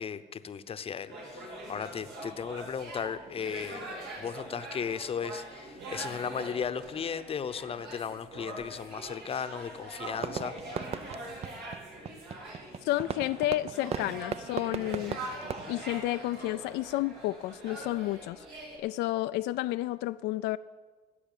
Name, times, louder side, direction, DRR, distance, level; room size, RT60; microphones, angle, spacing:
voice 1, 0.0-3.9 4.2-10.6, left 7 dB, 35° left, 0.8 m, -36 dB
sound 1, 1.1-18.8, right 1 dB, 75° right, 3.8 m, -43 dB
Fireworks, 10.2-16.7, right 7 dB, 40° right, 0.5 m, -39 dB
voice 2, 12.8-15.2 15.7-20.6, left 16 dB, 85° left, 0.4 m, -31 dB
13.5 x 8.4 x 9.0 m
cardioid pair, 110°, 17 cm